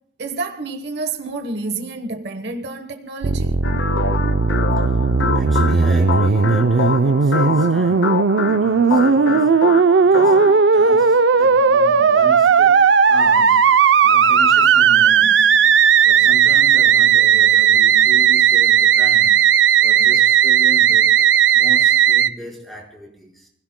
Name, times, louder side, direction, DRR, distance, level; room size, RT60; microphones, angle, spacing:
voice 1, 0.2-3.6, right 3 dB, 65° right, 1.1 m, -29 dB
Musical instrument, 3.2-22.3, right 7 dB, 85° right, 0.5 m, -15 dB
sound 1, 3.6-10.7, left 5 dB, 75° left, 0.7 m, -25 dB
voice 2, 5.3-15.6 16.0-19.4 19.8-21.2 21.5-23.5, right 1 dB, ahead, 4.6 m, -35 dB
28.5 x 16.5 x 2.2 m
head